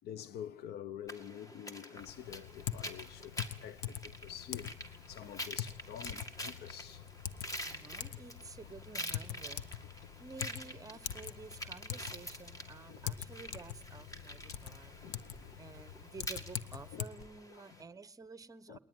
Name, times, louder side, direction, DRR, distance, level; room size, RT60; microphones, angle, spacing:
voice 1, 0.0-7.1 7.7-7.8 12.9-13.0 15.0-15.7 16.9-17.3 17.7-17.8 18.7-18.8, left 10 dB, 70° left, 0.9 m, -48 dB
sound 1, 1.1-17.8, equal, 20° left, 2.1 m, -47 dB
Typing, 2.0-17.1, left 10 dB, 85° left, 1.2 m, -44 dB
voice 2, 7.6-9.6 10.2-14.9 15.6-18.8, right 4 dB, 20° right, 1.0 m, -51 dB
sound 2, 17.2-17.3, left 1 dB, 55° left, 5.6 m, -67 dB
21.0 x 19.5 x 9.5 m
cardioid pair, 110°, 17 cm